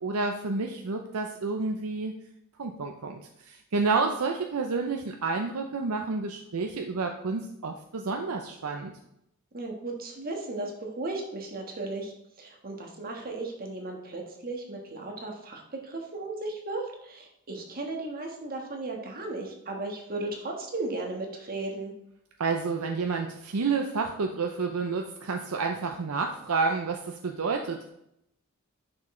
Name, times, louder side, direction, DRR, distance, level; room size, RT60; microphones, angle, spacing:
voice 1, 0.0-2.2 2.6-8.9 22.4-27.9, right 4 dB, 80° right, 3 dB, 0.6 m, -30 dB
voice 2, 9.5-12.1 12.4-21.9, right 2 dB, 45° right, 1 dB, 1.5 m, -35 dB
10.5 x 6.0 x 3.3 m, 0.79 s
head